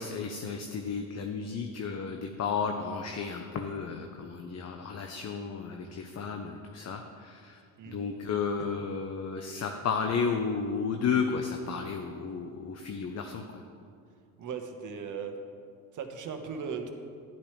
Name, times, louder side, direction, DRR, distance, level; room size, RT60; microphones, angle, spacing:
voice 1, 0.0-7.6 7.9-13.5, left 5 dB, 40° left, 4 dB, 0.9 m, -33 dB
voice 2, 14.4-15.3 15.9-16.9, right 6 dB, 45° right, 5 dB, 1.4 m, -37 dB
11.5 x 10.5 x 3.3 m, 2.3 s
hypercardioid pair, 70°, 42 cm